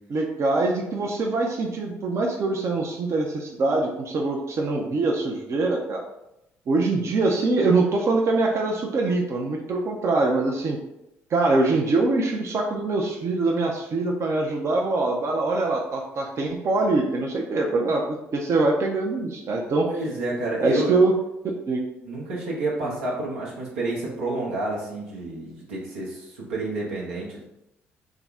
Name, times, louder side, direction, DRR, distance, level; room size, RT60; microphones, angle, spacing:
voice 1, 0.1-6.0 6.7-10.8 11.3-19.9 20.6-21.1 21.7-21.8 22.8-22.9, right 3 dB, 45° right, 1 dB, 0.5 m, -23 dB
voice 2, 19.9-21.0 22.0-27.4, right 2 dB, 85° right, -4 dB, 0.9 m, -29 dB
3.7 x 2.0 x 3.4 m, 0.87 s
hypercardioid pair, 50°, 7 cm